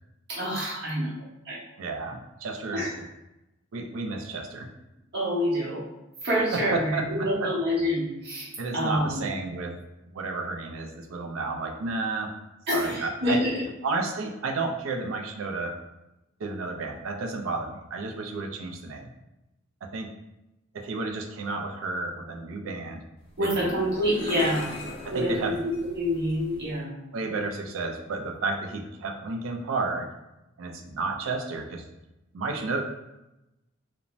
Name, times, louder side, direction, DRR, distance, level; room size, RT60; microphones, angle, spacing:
voice 1, 0.3-1.1 1.4-1.6 2.7-2.9 5.1-5.8 6.2-9.2 12.7-13.6 23.4-24.7 25.1-27.0, equal, 55° right, -6 dB, 0.8 m, -27 dB
voice 2, 1.8-2.8 3.7-4.7 6.5-7.5 8.6-9.7 10.0-12.3 12.7-13.4 13.8-15.8 16.4-19.1 19.8-20.1 20.7-23.0 23.4-23.7 25.0-25.6 27.1-30.1 30.6-31.9 32.3-32.8, right 3 dB, 80° right, 3 dB, 0.4 m, -32 dB
sound 1, 23.2-26.8, left 1 dB, 25° left, 0.5 m, -40 dB
2.5 x 2.1 x 3.0 m, 0.95 s
head